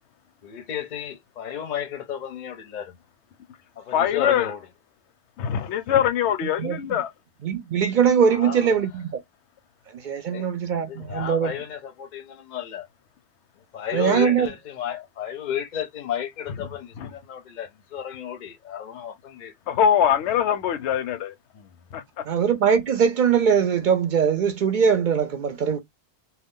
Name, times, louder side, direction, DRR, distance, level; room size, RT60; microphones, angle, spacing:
voice 1, 0.4-3.0 3.8-4.6 8.3-8.8 10.3-12.9 13.7-19.5 21.5-21.7, left 9 dB, 55° left, 0.6 m, -33 dB
voice 2, 3.9-4.5 5.4-7.1 17.0-17.1 19.7-21.3 21.9-22.2, left 9 dB, 85° left, 0.9 m, -22 dB
voice 3, 6.6-7.0 7.4-9.2 9.9-11.5 13.9-14.5 22.3-25.8, right 7 dB, 60° right, 0.6 m, -21 dB
2.3 x 2.3 x 3.5 m
omnidirectional pair, 1.1 m